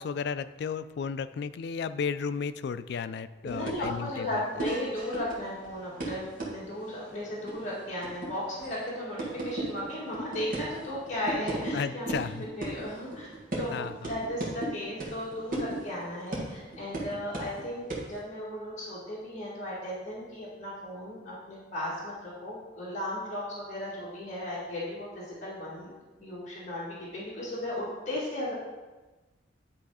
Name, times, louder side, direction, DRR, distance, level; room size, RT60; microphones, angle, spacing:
voice 1, 0.0-4.4 11.7-12.5 13.7-14.1, left 6 dB, 60° left, 13 dB, 0.3 m, -33 dB
voice 2, 3.4-12.1 12.3-13.3 13.6-25.9 26.2-28.5, left 1 dB, 40° left, -8 dB, 1.9 m, -35 dB
sound 1, 3.5-11.8 12.1-17.6 17.9-18.1, right 2 dB, 45° right, 1.6 m, -37 dB
10.0 x 3.5 x 4.8 m, 1.2 s
head